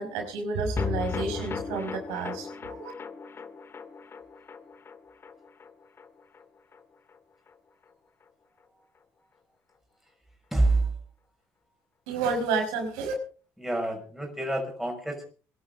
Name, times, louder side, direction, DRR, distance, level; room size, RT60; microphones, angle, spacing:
voice 1, 0.0-2.9 12.1-13.1, right 4 dB, 90° right, 3 dB, 5.4 m, -30 dB
sound 1, 0.8-7.2 7.5-7.6 7.8-7.9, left 5 dB, 35° left, 1.7 m, -37 dB
voice 2, 10.5-10.9 13.6-15.3, right 2 dB, 5° right, 2 dB, 5.9 m, -27 dB
23.0 x 11.5 x 3.9 m, 0.38 s
supercardioid pair, 85°, 7 cm